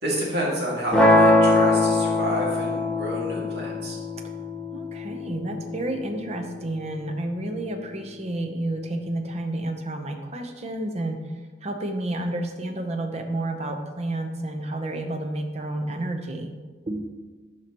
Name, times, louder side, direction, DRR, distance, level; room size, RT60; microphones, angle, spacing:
voice 1, 0.0-4.0, right 1 dB, 65° right, -4 dB, 2.0 m, -29 dB
sound 1, 0.9-7.0, left 2 dB, 5° left, 0.8 m, -22 dB
voice 2, 4.7-11.2 11.6-16.5 16.9-17.1, right 1 dB, 35° right, 5 dB, 0.7 m, -30 dB
11.0 x 4.5 x 2.9 m, 1.4 s
head